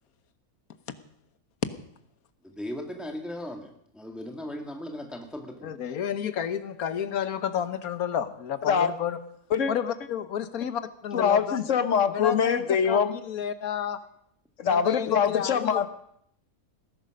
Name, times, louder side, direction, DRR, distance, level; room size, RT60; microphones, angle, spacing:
voice 1, 2.4-3.7 3.9-5.7, left 1 dB, ahead, 3 dB, 1.8 m, -37 dB
voice 2, 5.6-9.2 9.7-11.6 12.1-14.0 14.6-15.9, left 8 dB, 80° left, 12 dB, 1.5 m, -31 dB
voice 3, 11.1-13.1 14.6-15.9, left 7 dB, 60° left, 11 dB, 1.3 m, -23 dB
19.0 x 11.0 x 6.4 m, 0.71 s
omnidirectional pair, 1.5 m